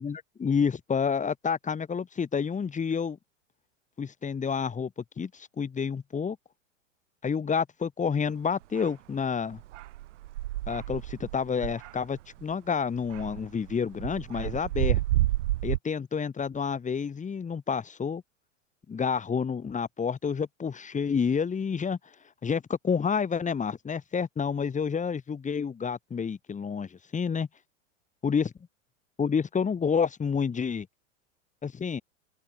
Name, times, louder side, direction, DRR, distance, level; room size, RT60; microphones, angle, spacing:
voice 1, 0.0-3.2 4.0-4.9 5.2-6.4 7.2-9.6 10.7-15.0 15.6-18.2 18.9-22.0 22.4-27.5 28.2-28.5 29.2-30.9 31.6-32.0, left 6 dB, 20° left, 7.7 m, -29 dB
sound 1, 8.8-8.9 9.5-12.5 12.9-15.8, right 16 dB, 65° right, 7.8 m, -30 dB
open air
hypercardioid pair, 110°, 38 cm